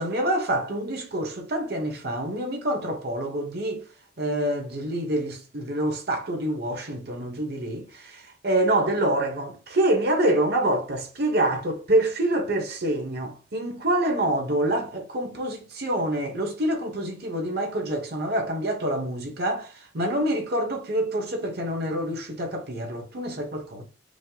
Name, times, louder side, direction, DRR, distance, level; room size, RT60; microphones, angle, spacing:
voice 1, 0.0-3.8 4.2-23.8, right 1 dB, 60° right, 1.1 m, -26 dB
5.2 x 2.1 x 3.9 m
head